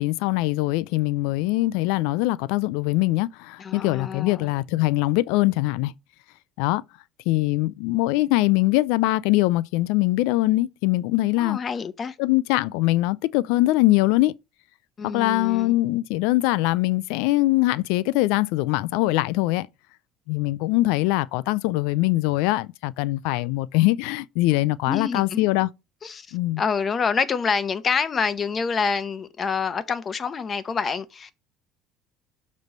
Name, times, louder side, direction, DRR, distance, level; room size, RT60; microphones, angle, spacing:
voice 1, 0.0-5.9 6.6-6.8 7.3-11.6 12.2-14.3 15.0-19.7 20.3-25.7 26.3-26.6, left 18 dB, 85° left, 0.3 m, -22 dB
voice 2, 3.6-4.5 11.4-12.2 15.0-15.7 24.9-25.5 26.0-31.3, left 5 dB, 35° left, 0.7 m, -27 dB
6.6 x 3.1 x 5.3 m
cardioid pair, 110°, 0 cm